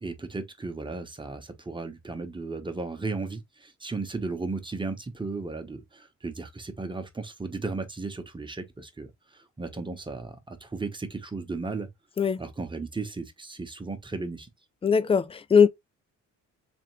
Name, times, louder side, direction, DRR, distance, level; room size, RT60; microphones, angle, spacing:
voice 1, 0.0-11.9 12.4-14.5, right 3 dB, 15° right, 1.0 m, -35 dB
voice 2, 14.8-15.7, left 6 dB, 20° left, 0.4 m, -20 dB
3.6 x 3.4 x 3.1 m
cardioid pair, 90°, 30 cm